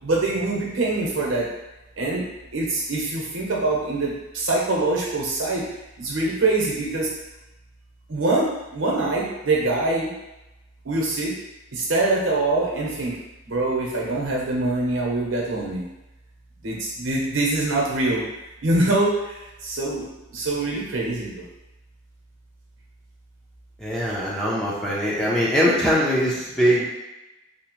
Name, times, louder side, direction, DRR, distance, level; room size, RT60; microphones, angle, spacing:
voice 1, 0.0-1.5 2.0-2.2 2.5-5.6 6.0-7.1 8.1-10.1 10.8-11.3 11.7-13.2 13.5-15.8 16.6-18.2 18.6-21.4, right 2 dB, 80° right, -3 dB, 0.8 m, -24 dB
voice 2, 23.8-26.9, equal, 5° left, -6 dB, 0.4 m, -22 dB
2.8 x 2.0 x 2.9 m, 0.99 s
head